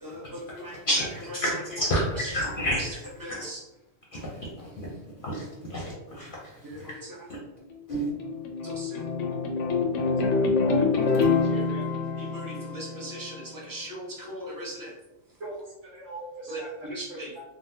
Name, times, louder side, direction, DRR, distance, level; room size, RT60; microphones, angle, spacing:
voice 1, 0.0-0.8 2.2-2.3 2.6-2.9 3.2-3.6 6.6-7.2 8.6-9.0 11.1-11.2 12.2-14.9 16.5-17.3, right 1 dB, 20° right, -4 dB, 0.7 m, -39 dB
voice 2, 0.8-3.4 4.1-4.9 5.2-6.9 7.9-8.1, equal, 55° left, -4 dB, 0.8 m, -30 dB
sound 1, 7.7-13.3, left 4 dB, 80° left, 0.9 m, -26 dB
voice 3, 10.0-11.8 15.4-16.7 17.1-17.4, right 2 dB, 70° right, -3 dB, 1.3 m, -41 dB
3.6 x 2.1 x 2.7 m, 0.96 s
omnidirectional pair, 1.2 m